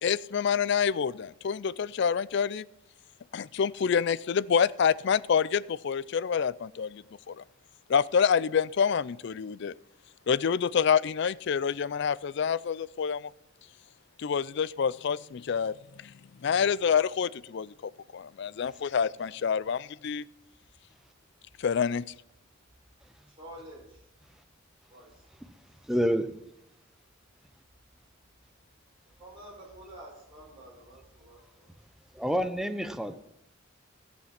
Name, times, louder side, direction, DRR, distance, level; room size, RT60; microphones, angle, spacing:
voice 1, 0.0-2.6 3.3-7.4 7.9-9.7 10.3-13.3 14.2-16.1 16.4-20.2 21.6-22.0, left 7 dB, 55° left, 0.4 m, -27 dB
voice 2, 23.4-23.9 24.9-25.1 29.2-31.4, right 1 dB, 25° right, 5.2 m, -48 dB
voice 3, 25.8-26.4 32.1-33.2, equal, ahead, 0.6 m, -28 dB
16.0 x 7.1 x 5.9 m
head